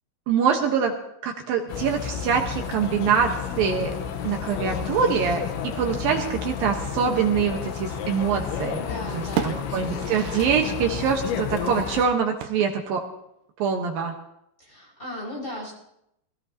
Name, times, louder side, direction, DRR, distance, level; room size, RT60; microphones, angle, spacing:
voice 1, 0.3-0.9 1.2-3.3 3.6-3.9 4.2-5.4 5.8-8.8 9.1-13.0 13.6-14.1, right 7 dB, 65° right, 2 dB, 2.5 m, -24 dB
sound 1, 1.7-12.1, left 7 dB, 90° left, 3.4 m, -31 dB
sound 2, 8.0-8.8 9.1-10.7 11.0-11.1 12.4-13.0, right 9 dB, 85° right, 3.2 m, -34 dB
voice 2, 8.7-9.7 14.6-15.7, left 1 dB, 15° left, -4 dB, 5.6 m, -36 dB
23.5 x 18.0 x 2.9 m, 0.78 s
omnidirectional pair, 5.2 m